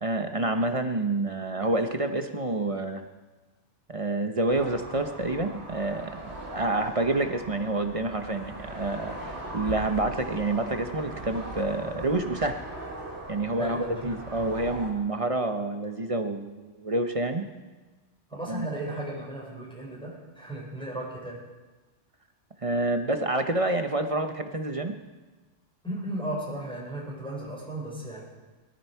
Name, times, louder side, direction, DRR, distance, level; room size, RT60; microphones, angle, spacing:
voice 1, 0.0-3.0 3.9-12.6 13.3-17.4 18.5-18.8 22.6-25.0, right 2 dB, 30° right, 6 dB, 0.9 m, -28 dB
sound 1, 4.5-14.9, right 1 dB, 60° right, 3.0 m, -40 dB
voice 2, 13.6-14.6 18.3-21.4 25.8-28.3, right 1 dB, 5° left, -5 dB, 4.9 m, -35 dB
19.0 x 13.5 x 4.6 m, 1.2 s
omnidirectional pair, 1.3 m